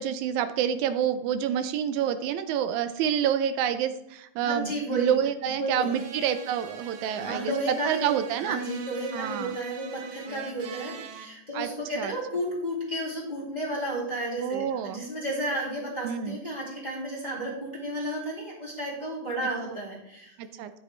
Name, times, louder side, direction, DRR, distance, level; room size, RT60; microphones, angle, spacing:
voice 1, 0.0-8.6 9.1-9.6 11.5-11.7 12.0-12.1 14.4-15.0 16.0-16.4 20.4-20.7, right 9 dB, 85° right, 10 dB, 2.0 m, -28 dB
voice 2, 4.4-5.1 5.6-5.9 7.2-8.1 8.4-20.4, right 1 dB, 15° left, -6 dB, 2.1 m, -32 dB
sound 1, 5.8-11.3, right 6 dB, 65° right, 1.7 m, -42 dB
10.0 x 7.7 x 3.2 m, 0.78 s
omnidirectional pair, 3.4 m